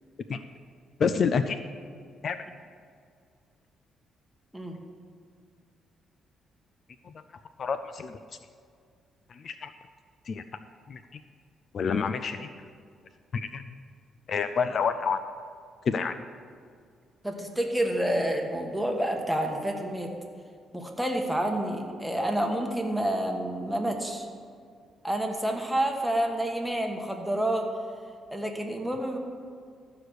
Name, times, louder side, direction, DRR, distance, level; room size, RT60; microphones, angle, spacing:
voice 1, 1.0-1.6 2.2-2.4 7.0-7.1 7.6-8.2 9.4-9.7 10.3-10.4 10.9-11.0 11.7-12.5 13.3-13.6 14.3-15.2 15.9-16.1, left 5 dB, 50° left, 10 dB, 0.4 m, -28 dB
voice 2, 17.2-20.2 20.7-24.3 25.0-27.7 28.3-29.2, right 1 dB, ahead, 2 dB, 1.4 m, -29 dB
13.5 x 4.9 x 6.3 m, 2.2 s
cardioid pair, 90°, 0 cm